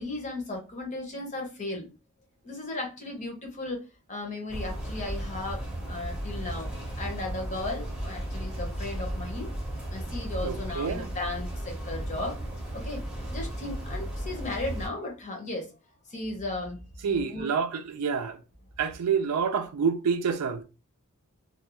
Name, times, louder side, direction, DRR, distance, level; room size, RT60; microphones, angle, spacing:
voice 1, 0.0-1.9 2.4-3.8 4.1-6.7 7.0-9.5 9.9-12.4 12.7-13.0 13.3-15.7 16.1-16.8 17.1-17.5, left 2 dB, 35° left, 0.7 m, -35 dB
sound 1, 4.5-14.9, right 1 dB, 5° right, 0.6 m, -35 dB
voice 2, 10.4-11.1 17.0-18.4 18.8-20.6, right 6 dB, 85° right, 0.4 m, -28 dB
2.3 x 2.2 x 2.9 m
head